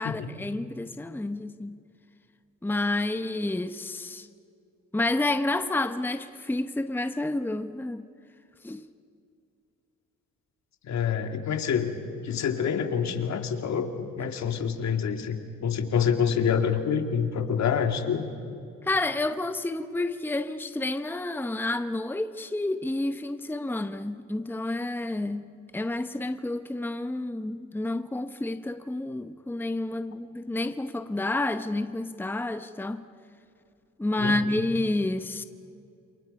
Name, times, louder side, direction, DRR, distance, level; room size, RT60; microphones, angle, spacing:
voice 1, 0.0-1.8 2.6-4.3 4.9-8.1 8.6-8.8 18.8-25.4 25.7-33.0 34.0-35.4, left 2 dB, 5° left, 0.9 m, -29 dB
voice 2, 10.8-12.0 12.2-18.3 34.2-34.4, left 7 dB, 65° left, 2.4 m, -27 dB
28.5 x 28.0 x 5.5 m
cardioid pair, 90°, 30 cm